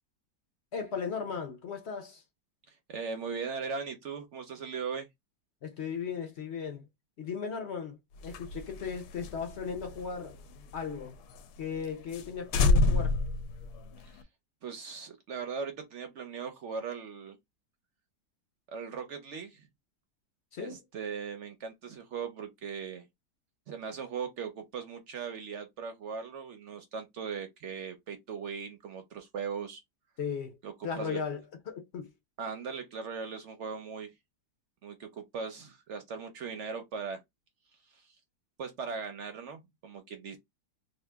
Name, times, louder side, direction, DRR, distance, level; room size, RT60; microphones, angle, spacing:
voice 1, 0.7-2.2 5.6-6.9 7.2-8.0 8.2-10.4 10.7-11.1 11.6-13.2 20.5-20.8 30.2-30.6 30.8-31.4 31.7-32.1, left 6 dB, 55° left, 0.8 m, -36 dB
voice 2, 2.7-5.1 14.0-14.2 14.6-17.4 18.7-19.7 20.6-23.1 23.7-29.8 30.6-31.2 32.4-34.1 34.8-37.2 37.9-38.1 38.6-40.4, right 6 dB, 65° right, 0.7 m, -39 dB
sound 1, 8.2-11.0 11.4-11.5 11.8-11.9 12.1-12.3 12.5-14.2, left 3 dB, 75° left, 1.1 m, -28 dB
2.9 x 2.5 x 3.3 m
omnidirectional pair, 1.8 m